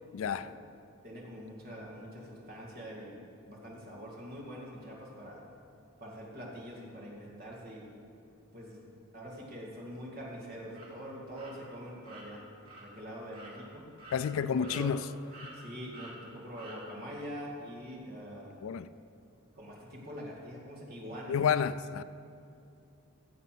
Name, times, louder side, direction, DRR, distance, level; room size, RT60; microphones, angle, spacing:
voice 1, 0.1-0.5 14.1-15.0 18.6-18.9 21.3-22.0, left 7 dB, 65° left, 0.3 m, -30 dB
voice 2, 1.0-5.4 6.0-7.9 8.5-12.4 12.8-13.8 14.4-14.9 15.5-18.5 19.6-21.4, equal, 45° right, 2.4 m, -44 dB
sound 1, 10.7-10.9 11.3-11.5 12.0-12.2 12.6-12.8 13.3-13.5 14.0-14.2 14.6-15.1 15.3-15.5 15.9-16.1 16.6-16.8, right 2 dB, 85° right, 3.4 m, -49 dB
15.5 x 7.2 x 6.0 m
head